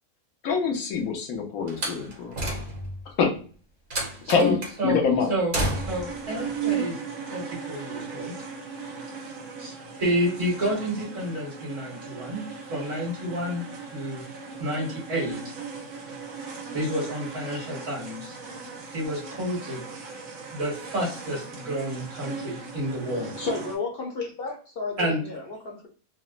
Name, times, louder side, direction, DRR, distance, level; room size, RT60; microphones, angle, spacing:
voice 1, 0.4-2.3 3.1-3.3 4.3-4.6 4.8-5.3, left 5 dB, 90° left, 1.2 m, -24 dB
Slam, 1.7-3.0 3.9-4.8 5.5-6.2, right 1 dB, 40° right, 1.0 m, -30 dB
voice 2, 4.2-5.0 5.3-7.0 7.3-8.3 9.6-13.6 13.9-14.2 14.6-15.5 16.7-18.4 18.9-19.8 20.5-23.4 25.0-25.2, equal, 65° right, 1.7 m, -30 dB
sound 1, 5.6-23.8, right 6 dB, 80° right, 1.2 m, -37 dB
voice 3, 23.1-25.9, left 4 dB, 50° left, 0.8 m, -33 dB
4.0 x 2.1 x 2.4 m
omnidirectional pair, 1.5 m